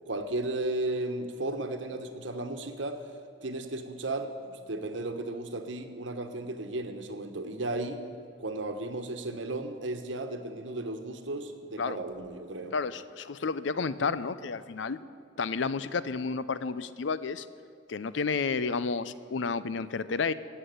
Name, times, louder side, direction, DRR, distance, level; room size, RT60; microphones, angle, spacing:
voice 1, 0.1-3.0 3.4-8.0 8.4-12.7, right 2 dB, 80° right, 7 dB, 1.2 m, -34 dB
voice 2, 12.7-15.0 15.4-17.5 17.9-20.3, left 4 dB, 75° left, 15 dB, 0.6 m, -31 dB
14.5 x 8.1 x 9.5 m, 2.4 s
head